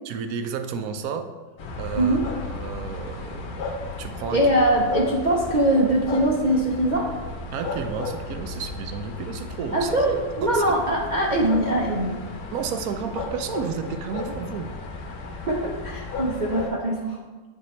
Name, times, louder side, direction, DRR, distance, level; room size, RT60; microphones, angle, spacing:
voice 1, 0.0-1.3 1.8-3.7 4.0-4.5 7.5-9.9 10.4-10.6 12.5-14.7, right 6 dB, 80° right, 8 dB, 1.0 m, -32 dB
sound 1, 1.6-16.7, left 3 dB, 85° left, 1.3 m, -34 dB
voice 2, 4.3-7.1 9.7-12.2 15.5-17.2, right 1 dB, 50° right, -3 dB, 0.6 m, -22 dB
8.3 x 3.6 x 4.2 m, 1.3 s
omnidirectional pair, 1.6 m